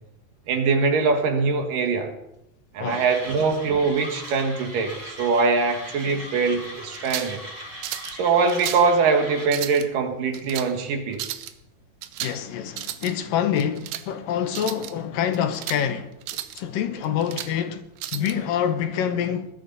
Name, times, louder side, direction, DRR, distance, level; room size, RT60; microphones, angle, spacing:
voice 1, 0.5-2.1 2.7-7.4 8.2-11.5, right 4 dB, 70° right, 3.1 m, -22 dB
voice 2, 2.8-3.1 6.1-6.3 12.2-16.1 16.5-17.9 18.1-19.5, left 9 dB, 75° left, 2.6 m, -26 dB
Mechanisms, 2.9-9.5, equal, 30° right, 5.2 m, -39 dB
sound 1, 6.9-7.4 7.8-8.2 8.5-8.9 9.4-9.9 10.3-10.7 11.1-11.5 12.0-12.4 12.7-13.1 13.6-14.1 14.5-14.9 15.3-15.8 16.2-16.6 17.0-17.5 18.0-18.3, right 13 dB, 85° right, 2.7 m, -33 dB
20.5 x 13.0 x 4.0 m
omnidirectional pair, 4.1 m